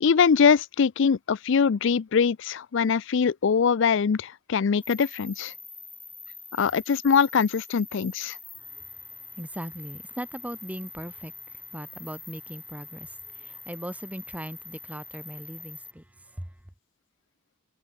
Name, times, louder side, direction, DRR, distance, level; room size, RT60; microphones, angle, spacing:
voice 1, 0.0-5.5 6.6-8.4, left 6 dB, 65° left, 0.4 m, -22 dB
sound 1, 4.8-15.9, left 3 dB, 10° left, 1.9 m, -44 dB
voice 2, 8.7-9.0 9.3-16.0 16.4-16.5, right 1 dB, 5° right, 0.8 m, -39 dB
head